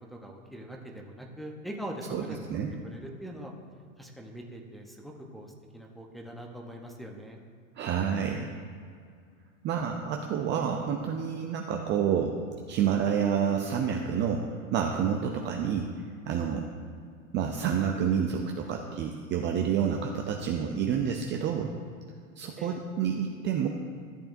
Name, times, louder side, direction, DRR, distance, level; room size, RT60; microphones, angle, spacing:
voice 1, 0.1-3.5 4.0-7.4 22.6-22.8, equal, ahead, 0 dB, 0.9 m, -42 dB
voice 2, 7.8-8.5 9.6-12.4 12.7-15.9 16.3-16.7 17.3-21.7 22.4-23.7, right 7 dB, 25° right, 2 dB, 0.5 m, -28 dB
14.0 x 6.8 x 2.6 m, 2.2 s
hypercardioid pair, 105°, 42 cm